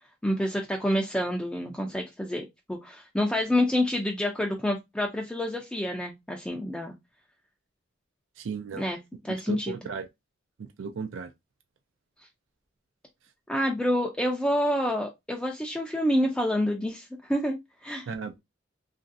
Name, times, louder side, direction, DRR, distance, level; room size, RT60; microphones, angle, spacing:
voice 1, 0.2-6.9 8.8-9.0 9.2-9.7 13.5-17.6 17.8-18.1, left 1 dB, 5° left, 0.3 m, -28 dB
voice 2, 8.4-8.9 9.3-10.1 10.6-11.3 18.1-18.4, right 5 dB, 75° right, 0.4 m, -35 dB
3.0 x 2.5 x 2.5 m
head